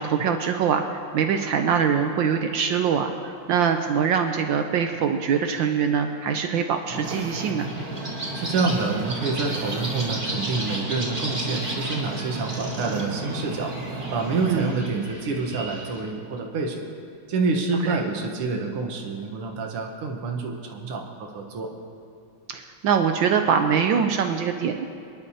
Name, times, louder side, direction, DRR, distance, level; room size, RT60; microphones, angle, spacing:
voice 1, 0.0-7.7 14.4-14.6 17.8-18.0 22.5-24.9, right 7 dB, 70° right, 5 dB, 1.3 m, -23 dB
Wind / Ocean, 6.9-14.8, right 2 dB, 50° right, 1.6 m, -34 dB
sound 1, 7.1-16.0, right 1 dB, 20° right, 3.1 m, -35 dB
voice 2, 8.4-13.7 14.1-16.8 17.3-21.7, right 4 dB, 85° right, 2 dB, 2.1 m, -27 dB
27.5 x 11.0 x 2.8 m, 2.4 s
omnidirectional pair, 2.4 m